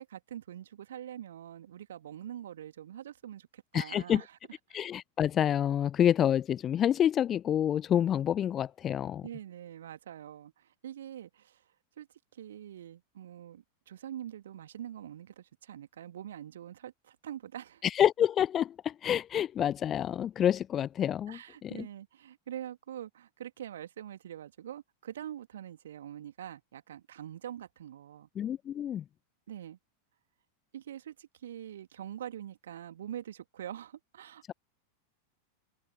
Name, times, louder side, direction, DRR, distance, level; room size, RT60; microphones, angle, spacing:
voice 1, 0.0-4.4 9.2-11.6 12.0-12.1 12.3-17.8 21.3-28.3 29.5-29.8 30.7-34.5, right 10 dB, 60° right, 2.2 m, -44 dB
voice 2, 3.7-4.2 4.7-9.3 17.8-21.9 28.4-29.0, left 10 dB, 25° left, 0.4 m, -28 dB
open air
figure-of-eight pair, 90°, 0 cm